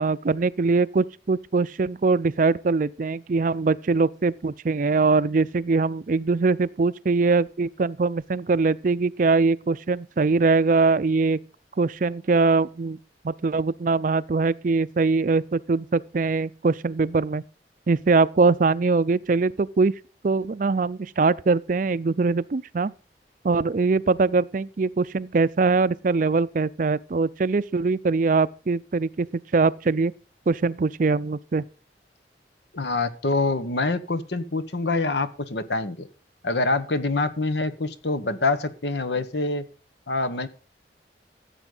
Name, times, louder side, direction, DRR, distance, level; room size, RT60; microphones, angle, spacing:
voice 1, 0.0-11.4 11.8-13.0 13.2-17.4 17.9-19.9 20.2-22.9 23.4-30.1 30.5-31.6, right 4 dB, 45° right, 0.4 m, -22 dB
voice 2, 32.7-36.1 36.4-39.6 40.1-40.5, left 3 dB, 80° left, 1.2 m, -25 dB
14.5 x 8.2 x 3.9 m
head